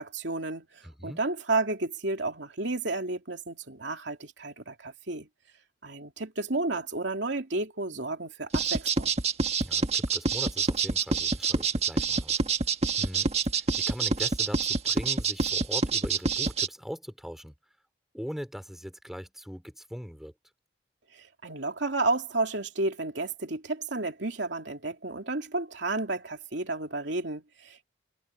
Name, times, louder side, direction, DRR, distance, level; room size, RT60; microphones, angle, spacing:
voice 1, 0.0-5.3 5.8-9.1 21.1-27.8, right 2 dB, 70° right, 2.8 m, -32 dB
voice 2, 0.8-1.2 9.6-12.4 13.0-17.6 18.1-20.3, equal, ahead, 3.6 m, -40 dB
sound 1, 8.5-16.7, right 4 dB, 35° right, 1.6 m, -26 dB
head